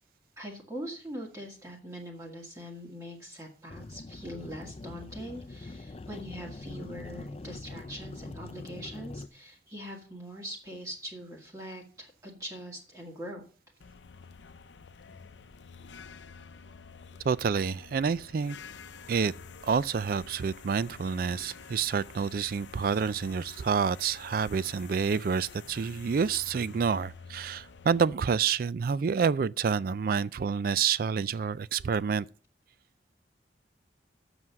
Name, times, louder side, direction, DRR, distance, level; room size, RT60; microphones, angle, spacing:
voice 1, 0.4-13.4, equal, 20° right, 1.7 m, -42 dB
sound 1, 3.7-9.3, left 2 dB, 35° left, 0.5 m, -43 dB
sound 2, 13.8-28.0, left 5 dB, 85° left, 0.7 m, -49 dB
voice 2, 17.2-18.6 19.1-19.3 19.6-32.3, right 6 dB, 50° right, 0.3 m, -28 dB
7.6 x 6.2 x 6.9 m
head